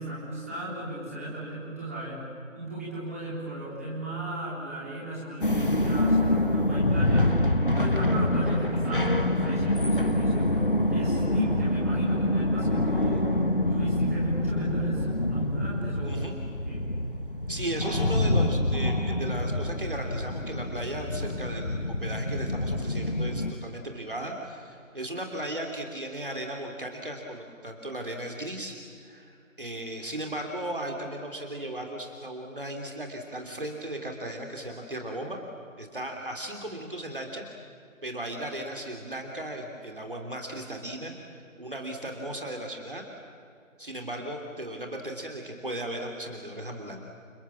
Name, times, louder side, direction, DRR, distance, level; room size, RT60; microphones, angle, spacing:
voice 1, 0.0-2.3 2.5-10.6 10.9-13.4 13.7-16.9, right 1 dB, 10° right, -7 dB, 3.8 m, -36 dB
sound 1, 5.4-23.5, left 1 dB, 40° left, 1.3 m, -26 dB
voice 2, 17.5-28.8 29.0-35.4 35.8-37.4 38.0-41.1 41.6-43.0 43.8-47.0, right 1 dB, 40° right, 2 dB, 3.2 m, -36 dB
29.0 x 27.5 x 7.4 m, 2.4 s
figure-of-eight pair, 170°, 41 cm